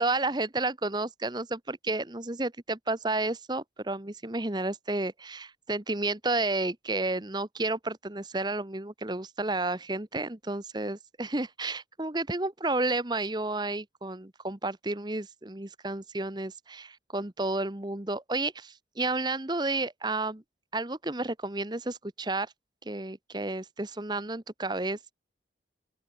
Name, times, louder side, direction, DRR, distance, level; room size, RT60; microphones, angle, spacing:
voice 1, 0.0-20.4 20.7-22.5 22.8-25.1, right 2 dB, 25° right, 1.1 m, -31 dB
open air
head